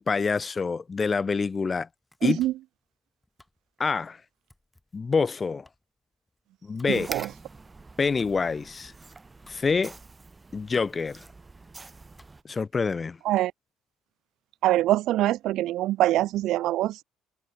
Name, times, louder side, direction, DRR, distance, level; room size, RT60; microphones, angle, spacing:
voice 1, 0.0-1.9 2.2-2.4 3.8-4.2 4.9-5.7 6.6-7.1 8.0-8.9 9.5-10.0 10.5-11.2 12.4-13.2, left 4 dB, 30° left, 0.3 m, -26 dB
Domestic sounds home sounds, 1.4-12.7, left 1 dB, 10° left, 4.1 m, -63 dB
voice 2, 2.2-2.5 6.9-7.3 13.2-13.5 14.6-17.0, right 15 dB, 65° right, 0.3 m, -24 dB
sound 1, 6.8-12.4, right 3 dB, 20° right, 1.1 m, -45 dB
supercardioid pair, 75°, 0 cm